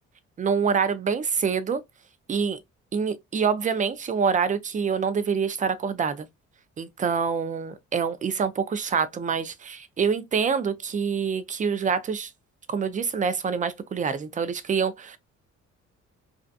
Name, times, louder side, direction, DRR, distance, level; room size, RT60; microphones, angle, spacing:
voice 1, 0.4-1.8 2.3-2.6 2.9-6.3 6.8-12.3 12.7-15.2, right 6 dB, 25° right, 0.4 m, -26 dB
2.4 x 2.3 x 2.4 m
cardioid pair, 90°, 30 cm